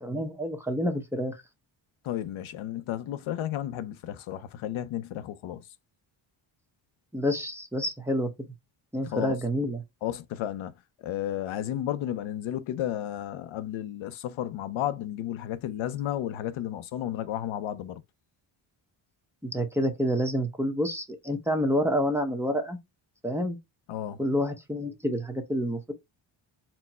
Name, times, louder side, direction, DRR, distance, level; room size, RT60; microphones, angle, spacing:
voice 1, 0.0-1.3 7.1-8.3 8.9-9.8 19.4-22.8 23.2-23.6 24.2-25.9, equal, 5° right, 0.9 m, -28 dB
voice 2, 2.0-5.7 9.0-9.3 10.0-10.7 11.0-18.0 23.9-24.2, left 11 dB, 80° left, 0.7 m, -33 dB
4.4 x 2.2 x 4.2 m
cardioid pair, 110°, 47 cm